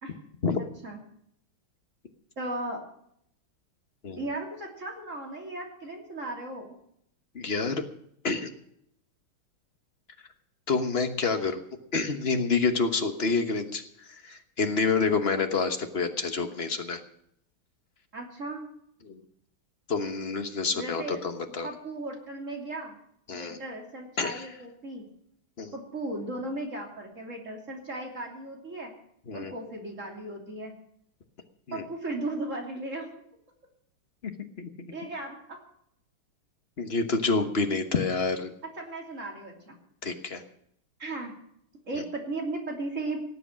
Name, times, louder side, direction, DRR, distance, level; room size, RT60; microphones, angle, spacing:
voice 1, 0.6-1.0 2.4-2.8 4.2-6.7 18.1-18.6 20.7-21.3 21.6-23.0 23.3-25.0 25.7-28.9 29.3-30.7 31.7-33.2 34.9-35.6 38.8-39.8 41.0-41.3 41.9-43.2, right 2 dB, 35° right, 0 dB, 3.2 m, -36 dB
voice 2, 7.3-7.8 8.2-8.5 10.7-11.6 11.9-13.8 14.1-17.0 19.1-19.2 19.9-21.7 23.3-23.6 24.2-24.5 25.6-25.7 29.3-29.5 31.7-31.8 34.2-34.3 34.6-34.9 36.8-38.5 40.0-40.4, left 4 dB, 35° left, 6 dB, 1.1 m, -28 dB
18.0 x 8.1 x 7.4 m, 0.71 s
omnidirectional pair, 2.3 m